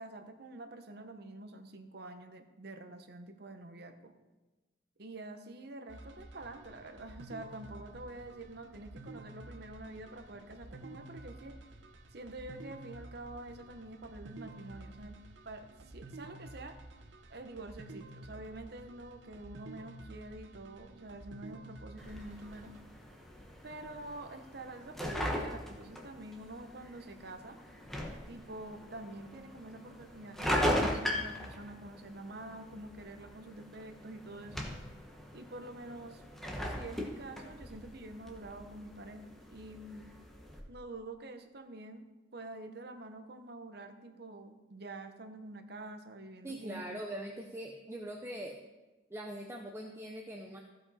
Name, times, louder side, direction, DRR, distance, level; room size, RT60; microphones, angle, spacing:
voice 1, 0.0-4.1 5.0-11.6 12.1-15.2 15.4-16.8 17.3-22.7 23.6-27.6 28.3-34.6 35.3-36.2 36.6-40.1 40.7-42.0 42.3-47.0, right 2 dB, 60° right, 7 dB, 0.9 m, -47 dB
sound 1, 5.9-22.8, right 2 dB, 90° right, 0.8 m, -51 dB
sound 2, 22.0-40.6, equal, ahead, 1.0 m, -39 dB
voice 2, 46.4-48.6 49.1-50.6, right 1 dB, 15° right, 1 dB, 0.6 m, -42 dB
15.0 x 5.3 x 4.2 m, 1.2 s
head